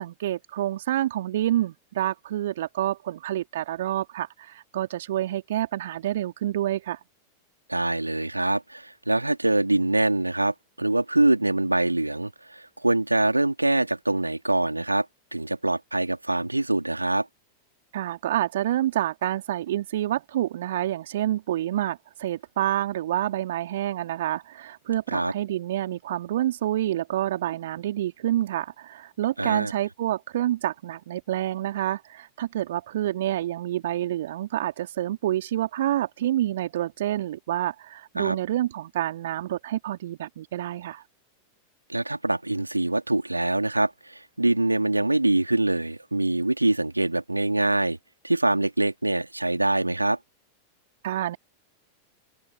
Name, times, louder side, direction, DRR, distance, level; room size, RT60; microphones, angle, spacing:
voice 1, 0.0-7.0 17.9-41.0 51.0-51.4, right 13 dB, 60° right, 2.8 m, -28 dB
voice 2, 7.7-15.1 15.3-17.3 25.1-25.3 29.4-29.7 38.2-38.4 41.9-48.0 48.2-50.2, right 2 dB, 85° right, 3.0 m, -24 dB
open air
figure-of-eight pair, 90°, 0 cm